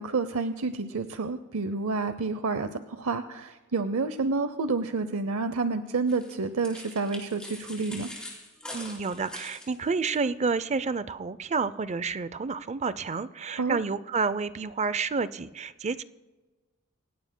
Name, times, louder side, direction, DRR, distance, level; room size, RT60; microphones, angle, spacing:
voice 1, 0.0-8.1 13.6-13.8, right 4 dB, 75° right, 10 dB, 0.7 m, -29 dB
sound 1, 6.1-10.2, left 1 dB, 5° left, 4.2 m, -43 dB
voice 2, 8.7-16.0, right 4 dB, 30° right, 15 dB, 0.5 m, -29 dB
27.0 x 17.0 x 2.2 m, 1.2 s
head